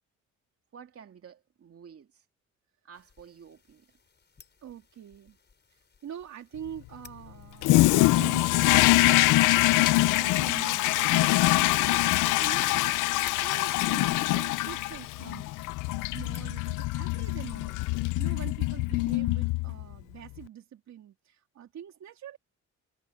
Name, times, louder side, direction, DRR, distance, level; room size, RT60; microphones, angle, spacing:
voice 1, 0.7-2.2 2.8-3.9, right 7 dB, 50° right, 2.3 m, -51 dB
sound 1, 2.9-18.8, left 4 dB, 35° left, 5.4 m, -58 dB
voice 2, 4.6-5.4 6.0-9.7 10.0-13.0 13.4-22.4, right 9 dB, 65° right, 3.3 m, -44 dB
Toilet flush, 7.6-19.9, left 19 dB, 85° left, 0.5 m, -24 dB
cardioid pair, 90°, 30 cm